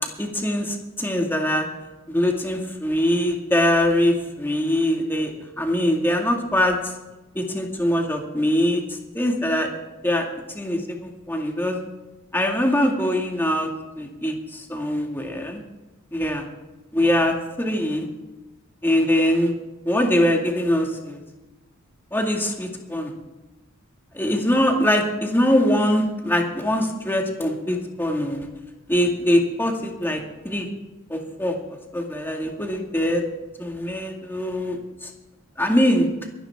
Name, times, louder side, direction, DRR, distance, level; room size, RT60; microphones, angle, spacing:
voice 1, 0.2-1.7 2.1-5.3 5.6-6.9 7.4-8.8 9.1-9.7 10.0-10.3 10.5-11.8 12.3-13.7 14.0-15.6 16.1-16.4 16.9-18.1 18.8-19.5 19.9-21.2 22.1-23.1 24.1-28.5 28.9-30.7 31.1-31.6 31.9-33.2 33.6-35.1 35.6-36.1, left 1 dB, 10° left, 1 dB, 2.1 m, -22 dB
23.5 x 11.0 x 3.6 m, 1.1 s
head